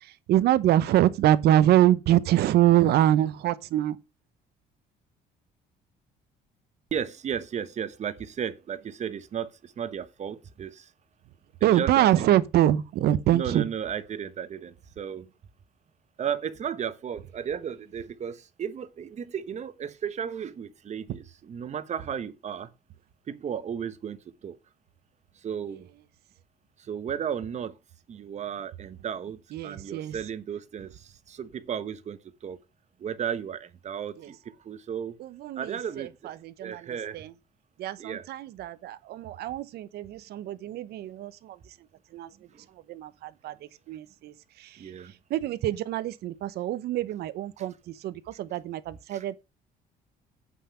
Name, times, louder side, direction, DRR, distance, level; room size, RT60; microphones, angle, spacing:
voice 1, 0.3-4.0 11.6-13.7 29.5-30.1 35.2-36.8 37.1-37.2 37.8-41.5 42.1-42.3 42.9-43.5 43.9-44.3 45.3-47.7 48.0-49.3, right 12 dB, 70° right, 0.9 m, -24 dB
voice 2, 6.9-10.9 11.6-12.4 13.3-15.3 16.2-22.7 23.3-24.2 24.4-24.6 25.4-25.9 26.8-27.7 28.1-32.6 33.0-35.2 35.6-36.3 36.6-37.2 38.0-38.3 42.5-42.7 44.8-45.1 47.6-47.7 49.1-49.3, right 8 dB, 45° right, 1.1 m, -34 dB
8.3 x 5.7 x 6.6 m
cardioid pair, 110°, 17 cm